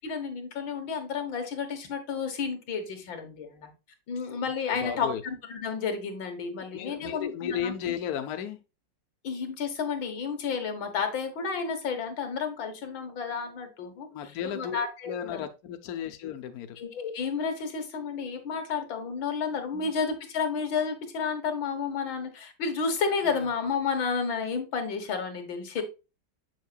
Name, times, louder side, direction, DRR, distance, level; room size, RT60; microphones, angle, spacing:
voice 1, 0.0-3.7 4.1-7.7 9.2-14.1 14.5-15.4 16.8-25.8, left 5 dB, 90° left, 6 dB, 2.2 m, -31 dB
voice 2, 4.7-5.2 6.7-8.6 14.1-14.8 15.1-16.8 19.7-19.9 23.3-23.5, left 9 dB, 60° left, 7 dB, 1.1 m, -34 dB
7.5 x 6.4 x 2.3 m, 0.29 s
omnidirectional pair, 2.0 m